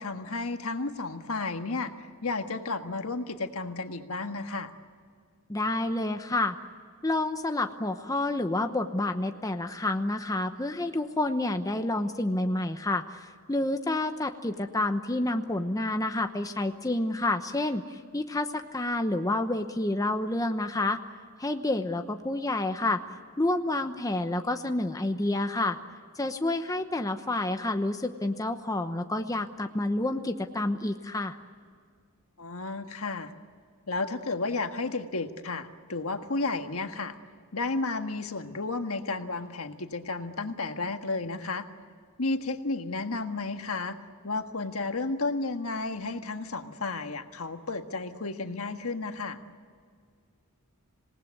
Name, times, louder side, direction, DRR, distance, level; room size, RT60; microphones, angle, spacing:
voice 1, 0.0-4.7 32.4-33.3 33.9-37.2 37.5-41.7 42.2-44.0 44.2-49.4, left 3 dB, 70° left, 6 dB, 1.6 m, -32 dB
voice 2, 5.5-6.6 7.0-21.0 21.4-23.0 23.4-25.8 26.2-31.4, left 2 dB, 15° left, 6 dB, 0.9 m, -29 dB
27.0 x 19.0 x 9.6 m, 2.1 s
head